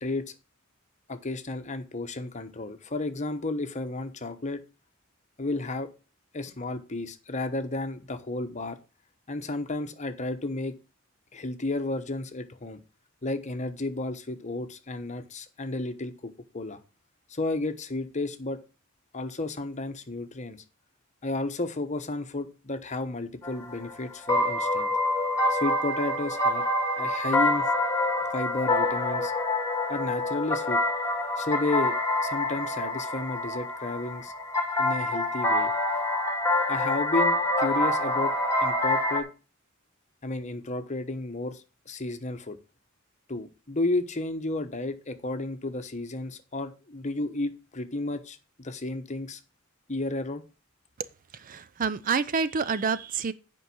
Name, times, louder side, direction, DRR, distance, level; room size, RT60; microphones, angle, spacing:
voice 1, 1.1-4.6 5.4-5.9 6.3-8.8 9.3-10.7 11.3-12.8 13.2-16.8 17.3-18.6 19.1-20.6 21.2-24.9 25.5-26.6 27.0-27.7 28.3-29.3 29.9-30.8 31.4-31.9 32.2-34.3 34.8-35.7 36.7-38.3 38.6-39.3 40.2-42.6 43.3-49.4 49.9-50.4, left 2 dB, 35° left, 1.0 m, -32 dB
sound 1, 23.4-39.2, left 2 dB, 15° left, 2.1 m, -26 dB
voice 2, 51.3-53.3, right 5 dB, 40° right, 0.5 m, -28 dB
8.8 x 5.3 x 6.2 m
head